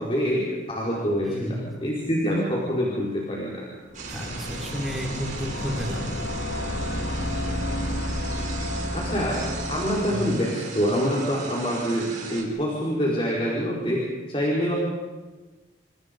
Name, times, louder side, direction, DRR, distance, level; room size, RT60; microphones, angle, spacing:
voice 1, 0.0-3.7 8.9-14.7, equal, 30° left, -4 dB, 4.8 m, -26 dB
voice 2, 1.2-1.7 4.1-6.2 10.1-10.4, equal, ahead, -1 dB, 4.8 m, -32 dB
sound 1, 3.9-10.4, left 1 dB, 80° left, 2.1 m, -31 dB
sound 2, 3.9-12.4, right 4 dB, 40° right, 5.2 m, -37 dB
29.5 x 28.5 x 5.4 m, 1.2 s
head